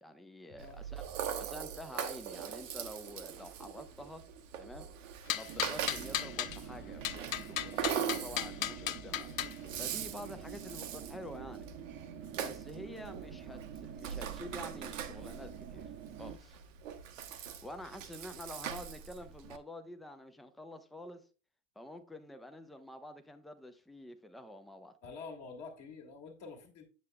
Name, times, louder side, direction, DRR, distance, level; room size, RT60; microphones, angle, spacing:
voice 1, 0.0-1.0 1.4-4.2 4.6-4.9 5.3-9.3 9.8-11.7 12.3-15.9 16.2-16.6 17.6-21.3 21.8-24.9, left 1 dB, ahead, 0.4 m, -48 dB
Rattle (instrument), 0.6-19.6, right 9 dB, 70° right, 0.9 m, -42 dB
sound 1, 5.3-6.6 7.0-9.6, left 11 dB, 75° left, 0.6 m, -35 dB
sound 2, 5.5-16.4, right 8 dB, 30° right, 0.7 m, -47 dB
voice 2, 25.0-26.9, left 4 dB, 40° left, 1.5 m, -47 dB
8.0 x 7.3 x 2.2 m
figure-of-eight pair, 90°, 40 cm